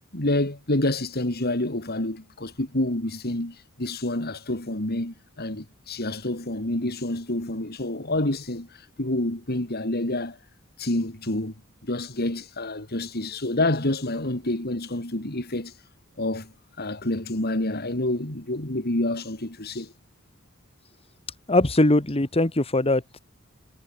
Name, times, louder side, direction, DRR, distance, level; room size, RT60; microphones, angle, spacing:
voice 1, 0.1-10.4 10.8-11.5 11.8-15.8 16.2-19.9, left 1 dB, 50° left, 3.5 m, -28 dB
voice 2, 21.5-23.2, left 2 dB, 30° left, 1.7 m, -21 dB
head